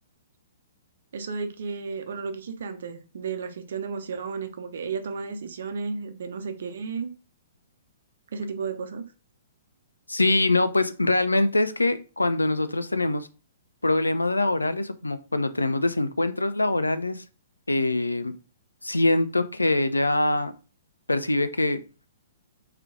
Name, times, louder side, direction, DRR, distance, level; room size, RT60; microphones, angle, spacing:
voice 1, 1.1-7.1 8.3-9.1, right 5 dB, 60° right, 8 dB, 0.6 m, -33 dB
voice 2, 10.1-13.3 13.8-17.2 17.7-18.3 18.8-20.5 21.1-21.8, left 2 dB, 85° left, 11 dB, 0.4 m, -24 dB
3.2 x 3.0 x 3.6 m, 0.35 s
figure-of-eight pair, 120°, 0 cm